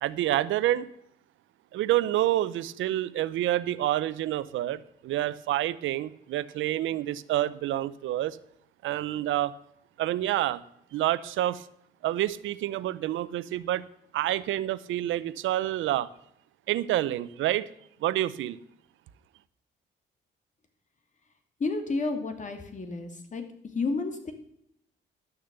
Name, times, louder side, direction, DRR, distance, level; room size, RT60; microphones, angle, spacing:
voice 1, 0.0-0.9 1.7-8.4 8.8-9.5 10.0-10.6 10.9-11.7 12.0-13.8 14.1-16.1 16.7-17.7 18.0-18.6, right 13 dB, 80° right, 17 dB, 0.7 m, -28 dB
voice 2, 21.6-23.4 23.7-24.3, left 3 dB, 40° left, 6 dB, 2.4 m, -31 dB
12.0 x 6.8 x 6.7 m, 0.73 s
cardioid pair, 90°, 20 cm